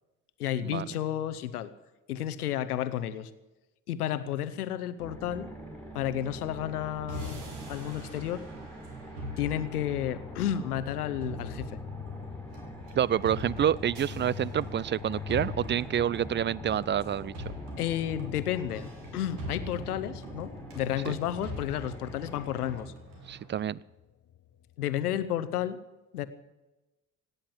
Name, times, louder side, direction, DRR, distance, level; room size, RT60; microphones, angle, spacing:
voice 1, 0.4-1.7 2.1-3.3 3.9-5.5 5.9-8.4 9.4-11.8 17.8-22.9 24.8-25.8 26.1-26.3, left 11 dB, 85° left, 14 dB, 0.9 m, -32 dB
sound 1, 5.0-22.9, right 1 dB, 5° left, 4.4 m, -45 dB
sound 2, 7.1-23.5, equal, 65° right, 4.1 m, -43 dB
sound 3, 9.6-25.4, left 9 dB, 35° left, 1.0 m, -47 dB
voice 2, 12.9-17.3 23.3-23.8, right 9 dB, 25° right, 23 dB, 0.5 m, -28 dB
17.0 x 10.0 x 7.5 m, 1.0 s
hypercardioid pair, 55°, 44 cm